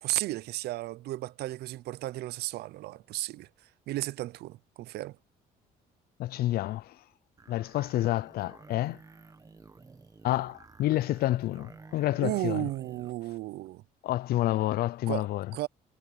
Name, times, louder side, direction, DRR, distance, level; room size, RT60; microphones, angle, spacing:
voice 1, 0.0-3.5 3.9-5.2 12.2-13.8 15.1-15.3 15.5-15.7, right 17 dB, 70° right, 0.5 m, -34 dB
voice 2, 6.2-7.0 7.5-9.0 10.2-12.7 14.0-15.5, left 15 dB, 65° left, 0.5 m, -29 dB
sound 1, 7.4-13.2, right 4 dB, 20° right, 1.3 m, -52 dB
cardioid pair, 110°, 17 cm